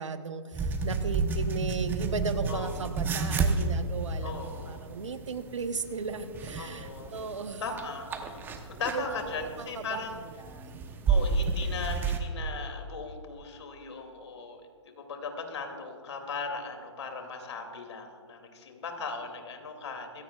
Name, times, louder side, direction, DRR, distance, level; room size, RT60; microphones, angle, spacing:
voice 1, 0.0-7.6 8.9-10.0 10.4-10.8, right 4 dB, 80° right, 9 dB, 1.1 m, -36 dB
sound 1, 0.5-12.2, right 4 dB, 15° right, 0.9 m, -31 dB
voice 2, 4.2-4.8 6.6-7.1 7.6-10.2 11.1-20.2, left 4 dB, 65° left, 4 dB, 2.7 m, -38 dB
22.5 x 16.5 x 2.4 m, 2.1 s
hypercardioid pair, 140°, 15 cm